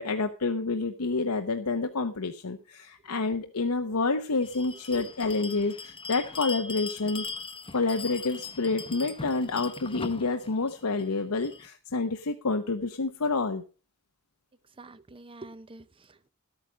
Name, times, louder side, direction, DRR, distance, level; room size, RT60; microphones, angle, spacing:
voice 1, 0.0-7.3 7.7-13.6, left 3 dB, 85° left, 0.9 m, -28 dB
Bell, 4.4-11.7, left 4 dB, 25° left, 0.9 m, -40 dB
voice 2, 14.8-16.3, right 2 dB, 25° right, 0.6 m, -45 dB
12.5 x 8.9 x 5.1 m
head